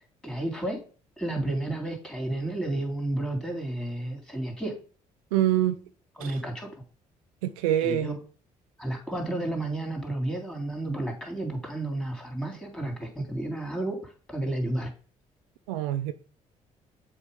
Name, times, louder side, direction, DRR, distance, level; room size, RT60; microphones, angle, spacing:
voice 1, 0.2-0.8 1.2-4.7 6.2-6.7 7.8-8.2 8.8-14.0 14.3-14.9, right 1 dB, 5° left, 3.1 m, -31 dB
voice 2, 5.3-5.8 6.2-6.3 7.4-8.1 15.7-16.1, right 12 dB, 85° right, 0.4 m, -25 dB
7.3 x 3.0 x 5.2 m
hypercardioid pair, 50°, 18 cm